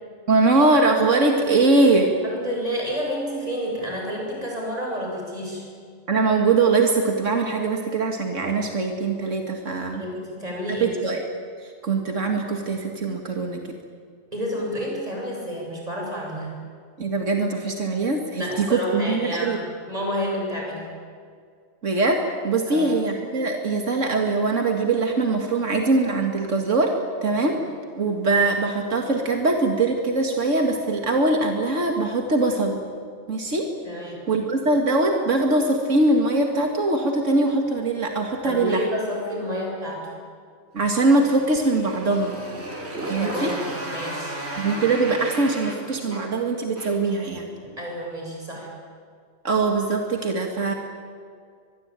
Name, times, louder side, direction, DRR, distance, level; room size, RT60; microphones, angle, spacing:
voice 1, 0.3-2.1 6.1-10.0 10.7-11.2 11.6-13.6 17.0-19.6 21.8-27.0 27.2-27.6 28.0-32.8 33.3-33.7 34.3-38.9 40.7-42.3 43.1-43.5 44.6-47.5 49.4-50.7, right 3 dB, 85° right, 3 dB, 2.4 m, -22 dB
voice 2, 2.2-5.6 9.9-10.9 14.3-16.6 18.4-19.6 19.9-20.9 22.7-22.9 33.8-34.2 38.4-40.1 43.2-44.4 47.8-48.7, equal, 30° right, -1 dB, 7.8 m, -30 dB
Motorcycle, 40.8-47.2, right 1 dB, 60° right, 4.0 m, -34 dB
25.5 x 21.0 x 9.0 m, 2.2 s
omnidirectional pair, 1.3 m